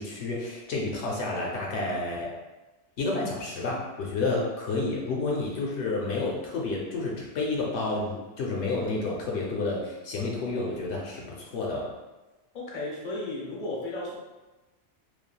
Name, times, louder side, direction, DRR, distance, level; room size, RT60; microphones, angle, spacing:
voice 1, 0.0-2.3 3.0-11.9, left 3 dB, 80° left, -2 dB, 0.9 m, -30 dB
voice 2, 12.5-14.2, left 2 dB, 50° left, -3 dB, 0.7 m, -34 dB
3.2 x 2.3 x 2.3 m, 1.1 s
omnidirectional pair, 1.2 m